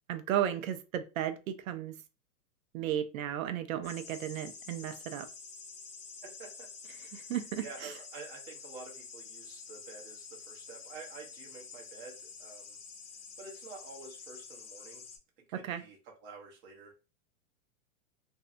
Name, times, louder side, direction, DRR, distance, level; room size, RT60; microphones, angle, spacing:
voice 1, 0.1-1.9 2.7-5.3 7.1-7.9 15.6-15.8, right 10 dB, 65° right, 0.6 m, -34 dB
sound 1, 3.8-15.2, left 5 dB, 40° left, 0.6 m, -48 dB
voice 2, 6.2-6.7 7.0-7.3 7.6-12.8 13.4-15.1 15.5-17.0, right 4 dB, 25° right, 0.8 m, -49 dB
2.6 x 2.2 x 2.5 m
hypercardioid pair, 140°, 43 cm